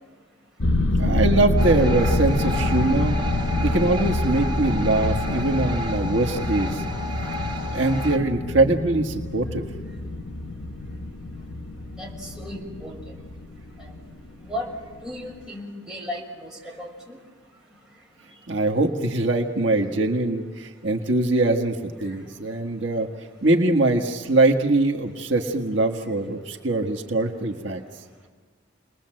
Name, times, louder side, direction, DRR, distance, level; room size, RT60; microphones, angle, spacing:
sound 1, 0.6-15.1 15.4-15.5, left 1 dB, 80° left, 1.0 m, -27 dB
voice 1, 0.9-3.2 3.6-6.8 7.7-9.6 18.5-23.1 23.4-27.8, right 2 dB, 70° right, 3 dB, 1.6 m, -22 dB
sound 2, 1.6-8.2, left 1 dB, 25° right, 3.2 m, -32 dB
voice 2, 12.0-13.0 13.8-14.0 14.4-14.7 15.0-17.2 22.1-22.2, left 1 dB, 5° right, -3 dB, 6.2 m, -35 dB
29.5 x 21.5 x 7.7 m, 1.5 s
head